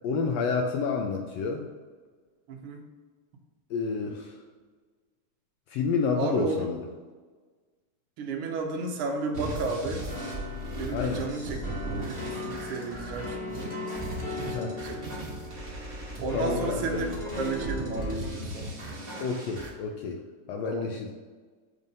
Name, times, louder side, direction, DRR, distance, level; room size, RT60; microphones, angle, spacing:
voice 1, 0.0-1.7 3.7-4.4 5.7-6.8 10.9-11.3 14.5-14.7 16.3-17.0 19.2-20.2 20.5-21.1, left 4 dB, 85° left, 2 dB, 1.5 m, -29 dB
voice 2, 2.5-2.8 6.1-6.6 8.2-10.0 10.8-11.6 12.0-13.7 14.2-15.0 16.2-17.1 17.3-18.7 20.6-20.9, right 3 dB, 75° right, 1 dB, 1.3 m, -33 dB
sound 1, 9.3-19.7, right 1 dB, 50° right, 0.6 m, -37 dB
sound 2, 10.1-18.4, left 2 dB, 30° left, 1.2 m, -38 dB
7.1 x 2.6 x 5.4 m, 1.4 s
omnidirectional pair, 3.5 m